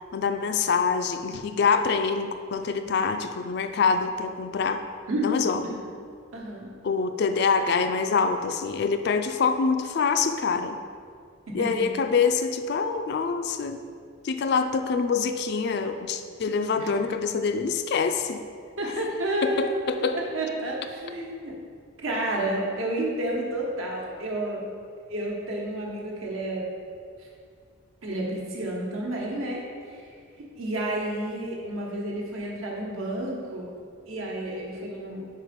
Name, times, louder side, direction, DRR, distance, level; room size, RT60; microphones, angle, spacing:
voice 1, 0.1-4.8 5.2-5.8 6.8-10.8 11.5-13.8 14.2-18.4 19.4-20.2, left 5 dB, 50° left, 8 dB, 0.3 m, -25 dB
voice 2, 5.1-5.9 6.3-6.7 11.5-11.9 16.8-16.9 18.8-21.5 22.0-24.6 25.1-26.7 28.0-29.6 29.9-30.0 30.6-33.7 34.1-35.2, right 1 dB, 70° right, -2 dB, 1.2 m, -30 dB
4.7 x 4.7 x 5.1 m, 2.2 s
head